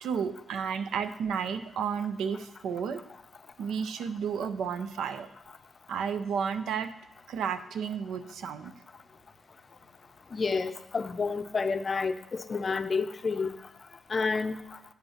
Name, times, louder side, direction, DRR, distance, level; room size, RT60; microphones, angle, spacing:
voice 1, 0.0-3.0 3.6-5.3 5.9-6.9 7.3-8.7, right 7 dB, 85° right, 0.5 m, -32 dB
voice 2, 10.3-13.6 14.1-14.6, left 4 dB, 45° left, 0.5 m, -29 dB
8.3 x 5.5 x 5.6 m
cardioid pair, 80°, 0 cm